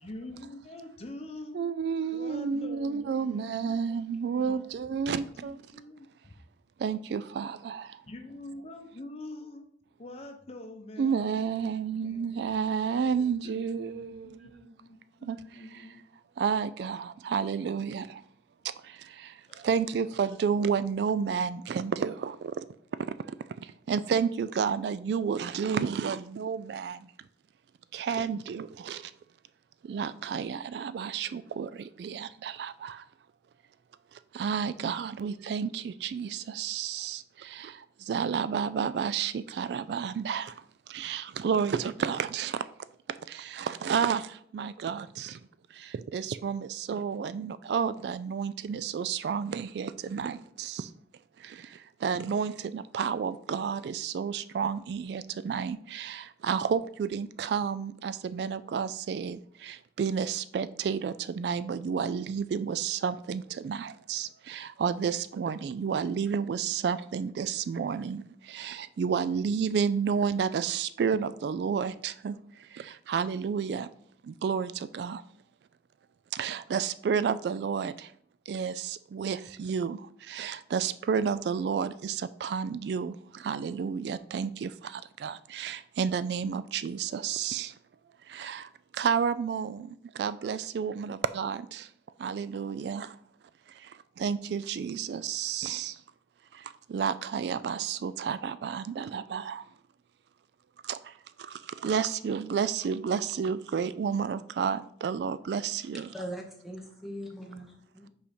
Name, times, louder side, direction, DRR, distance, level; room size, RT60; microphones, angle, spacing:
voice 1, 0.0-1.8 2.1-3.8 4.3-6.3 8.1-9.6 10.0-16.0 18.6-18.7 19.5-19.7, left 1 dB, 35° left, 5 dB, 0.8 m, -46 dB
voice 2, 1.5-5.6 6.8-8.0 11.0-14.5 15.2-15.9 16.4-18.2 18.6-22.6 23.0-23.1 23.6-27.1 27.9-29.1 29.8-33.1 34.1-42.7 43.1-45.4 45.7-50.9 51.4-73.9 74.2-75.2 76.3-78.1 78.5-87.7 88.3-91.9 92.2-93.2 93.7-96.0 96.5-99.6 100.8-106.1, right 6 dB, 70° right, 14 dB, 0.3 m, -31 dB
voice 3, 106.1-108.1, equal, ahead, 2 dB, 1.0 m, -41 dB
5.5 x 4.9 x 4.3 m, 0.64 s
head